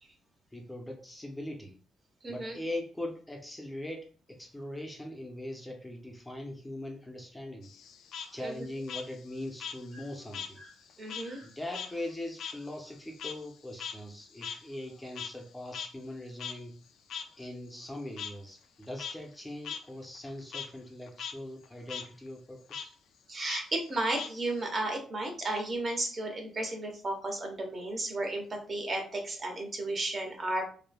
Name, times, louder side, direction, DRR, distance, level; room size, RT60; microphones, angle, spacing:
voice 1, 0.5-1.8 2.3-7.7 8.3-10.6 11.4-16.7 17.4-22.9, left 1 dB, 10° left, 1 dB, 0.5 m, -41 dB
voice 2, 2.2-2.6 8.4-8.6 9.9-10.0 10.6-10.7 11.0-11.5 23.3-30.7, right 2 dB, 35° right, 2 dB, 0.9 m, -34 dB
Frog, 7.6-10.6 10.9-15.5 15.7-15.9 16.4-16.5 17.1-17.2 18.2-18.3 18.8-19.1 19.6-19.8 20.1-20.7 21.1-21.3 21.6-22.0 22.7-22.8 23.5-24.7, left 7 dB, 70° left, 0.3 m, -40 dB
3.1 x 2.1 x 2.3 m, 0.42 s
cardioid pair, 90°, 0 cm